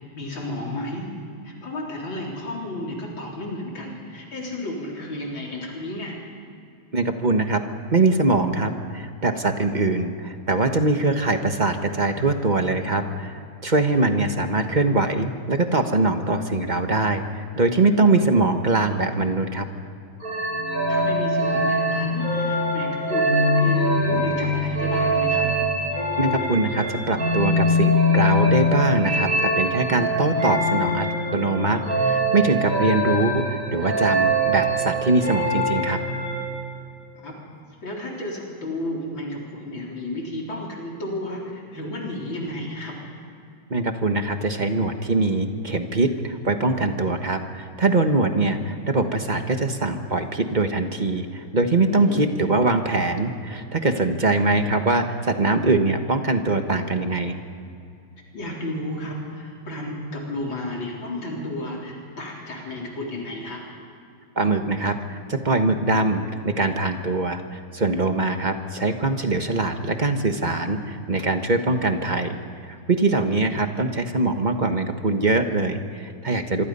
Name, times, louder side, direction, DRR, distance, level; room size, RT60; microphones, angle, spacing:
voice 1, 0.2-1.1 1.4-6.2 20.9-25.5 37.2-37.4 37.8-43.0 51.9-52.2 52.5-52.6 58.3-63.7 73.3-73.4, left 1 dB, 80° left, -2 dB, 4.5 m, -32 dB
voice 2, 6.9-7.6 7.9-19.7 26.2-31.1 31.3-36.0 43.7-57.4 64.4-72.4 72.6-76.6, right 2 dB, 30° right, 6 dB, 1.1 m, -22 dB
sound 1, 20.2-36.6, equal, 45° right, 7.5 m, -23 dB
26.5 x 23.5 x 5.5 m, 2.5 s
omnidirectional pair, 2.1 m